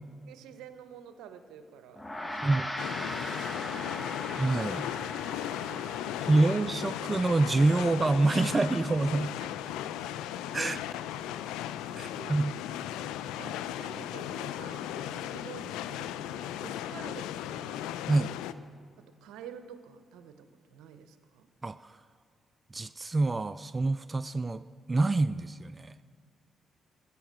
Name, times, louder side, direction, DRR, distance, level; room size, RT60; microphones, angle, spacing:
voice 1, 0.3-2.6 3.2-3.9 5.4-6.7 9.4-9.8 11.9-12.7 13.4-18.0 19.0-21.5, right 8 dB, 80° right, 10 dB, 0.7 m, -49 dB
Gong, 2.0-11.6, left 1 dB, 20° left, 1.1 m, -41 dB
sound 1, 2.8-18.5, left 12 dB, 80° left, 0.3 m, -36 dB
voice 2, 4.3-4.8 6.2-9.3 10.5-10.8 12.0-12.5 18.1-18.3 21.6-21.8 22.7-26.0, right 2 dB, 30° right, 13 dB, 0.3 m, -26 dB
14.0 x 5.7 x 7.4 m, 2.1 s
hypercardioid pair, 50°, 0 cm